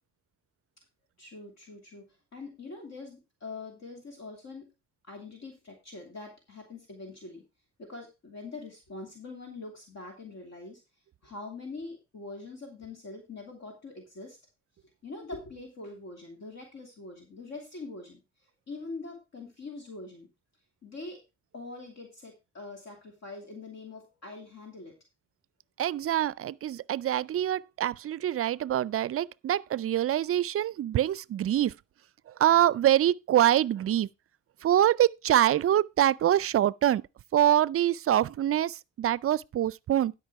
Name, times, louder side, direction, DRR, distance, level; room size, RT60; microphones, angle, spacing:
voice 1, 1.2-2.1 2.3-4.6 5.1-7.4 7.8-10.8 11.2-14.4 15.0-18.2 18.7-20.3 20.8-21.2 21.5-24.9, left 3 dB, 55° left, 2.7 m, -43 dB
voice 2, 25.8-31.7 32.3-34.1 34.6-37.0 37.3-40.1, right 11 dB, 45° right, 0.4 m, -25 dB
12.0 x 5.4 x 4.6 m
cardioid pair, 100°, 32 cm